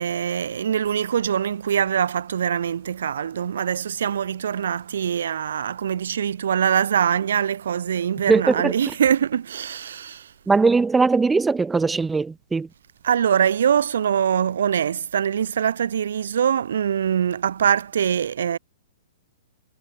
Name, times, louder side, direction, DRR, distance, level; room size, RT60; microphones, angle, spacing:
voice 1, 0.0-10.3 13.0-18.6, right 8 dB, 80° right, 3.0 m, -23 dB
voice 2, 8.3-8.7 10.5-12.7, right 4 dB, 5° right, 3.2 m, -20 dB
hypercardioid pair, 160°, 0 cm